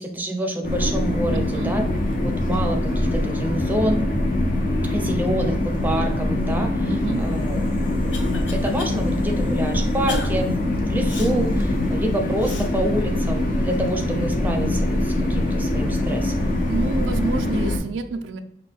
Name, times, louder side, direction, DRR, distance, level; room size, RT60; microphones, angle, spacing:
voice 1, 0.0-1.8 2.2-4.1 4.8-16.5, right 1 dB, 10° right, 3 dB, 0.6 m, -27 dB
sound 1, 0.6-17.8, left 1 dB, 50° left, 0.7 m, -23 dB
voice 2, 1.3-1.7 6.9-7.2 16.7-18.4, right 4 dB, 85° right, 8 dB, 0.4 m, -28 dB
Cough, 7.5-8.9 9.4-9.5 10.1-10.3 11.1-11.3 12.4-12.7, left 2 dB, 85° left, 0.8 m, -32 dB
5.7 x 2.2 x 3.5 m, 0.79 s
head